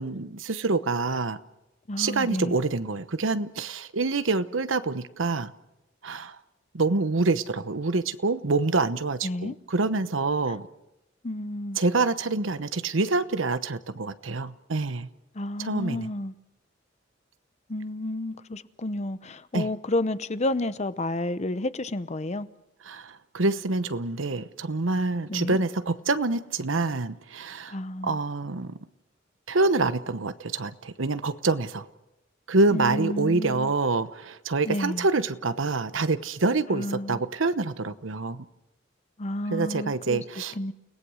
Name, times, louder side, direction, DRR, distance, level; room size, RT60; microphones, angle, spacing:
voice 1, 0.0-1.4 2.0-5.5 6.0-6.4 6.7-10.7 11.8-15.1 15.6-16.1 19.5-19.7 22.9-27.8 28.0-28.8 29.5-31.9 32.5-38.4 39.5-40.5, right 3 dB, 85° right, 1.0 m, -26 dB
voice 2, 1.9-2.6 9.2-9.6 10.5-10.6 11.2-11.8 15.3-16.3 17.7-22.5 25.3-25.6 27.7-28.2 32.7-33.7 34.7-35.1 36.7-37.2 39.2-40.2 40.6-40.7, left 1 dB, 35° left, 0.8 m, -31 dB
30.0 x 18.5 x 6.4 m
head